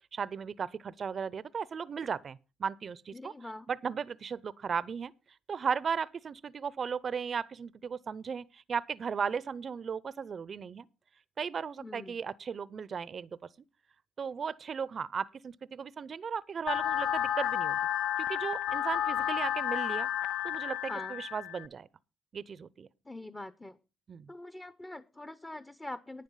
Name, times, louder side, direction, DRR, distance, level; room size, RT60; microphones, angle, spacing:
voice 1, 0.1-3.3 3.7-5.1 5.5-10.9 11.4-13.4 14.2-17.8 18.2-20.1 20.4-21.9 22.3-22.9 24.1-24.3, right 6 dB, 45° right, 0.6 m, -36 dB
voice 2, 3.1-3.7 11.8-12.1 20.9-21.1 23.1-23.8 24.3-26.2, left 1 dB, 15° left, 0.7 m, -43 dB
sound 1, 16.7-21.7, left 11 dB, 90° left, 0.5 m, -31 dB
11.0 x 9.5 x 5.5 m
cardioid pair, 90°, 0 cm